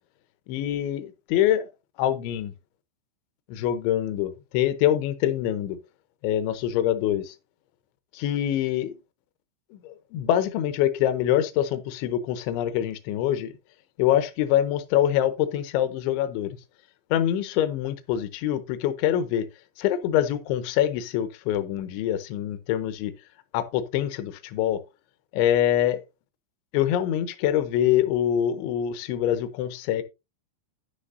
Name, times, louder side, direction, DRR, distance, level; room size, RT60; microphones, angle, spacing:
voice 1, 0.5-1.7 2.0-2.5 3.5-5.8 6.2-7.3 8.1-9.0 9.7-13.5 14.0-16.6 17.1-19.5 19.8-23.1 23.5-24.8 25.3-26.0 26.7-30.0, left 11 dB, 85° left, 3.1 m, -25 dB
10.0 x 9.8 x 2.6 m
omnidirectional pair, 5.3 m